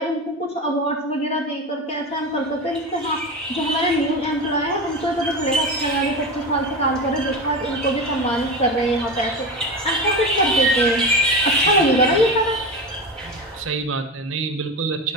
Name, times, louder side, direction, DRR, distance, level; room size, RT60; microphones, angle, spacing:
voice 1, 0.0-3.2 3.5-9.5 9.8-11.0 11.4-12.6, right 1 dB, 35° left, 0 dB, 2.4 m, -22 dB
sound 1, 2.5-13.6, right 1 dB, 5° left, 2.6 m, -25 dB
voice 2, 11.8-12.2 13.2-15.1, right 4 dB, 80° right, 7 dB, 1.0 m, -28 dB
11.0 x 5.3 x 6.7 m, 0.72 s
head